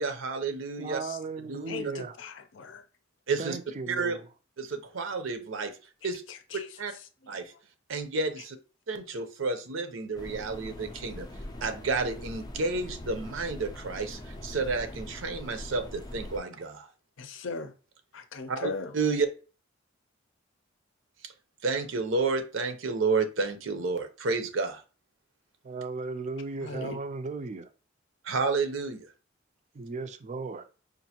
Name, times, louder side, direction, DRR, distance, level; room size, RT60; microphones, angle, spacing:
voice 1, 0.0-1.0 1.4-1.7 3.3-3.6 3.9-4.2 4.6-5.7 6.0-6.2 6.8-6.9 7.3-7.5 7.9-8.6 8.9-11.3 11.6-16.9 18.5-19.3 21.2-21.3 21.6-24.8 28.2-29.1, right 4 dB, 75° right, 0.7 m, -30 dB
voice 2, 0.8-2.2 3.4-4.2 25.6-27.7 29.7-30.7, right 3 dB, 35° right, 0.4 m, -36 dB
voice 3, 1.7-2.8 6.5-6.6 17.2-17.7 18.1-18.9 26.6-27.0, left 3 dB, 70° left, 0.5 m, -38 dB
sound 1, 10.1-16.4, left 1 dB, 20° left, 0.5 m, -42 dB
5.2 x 2.5 x 2.8 m
head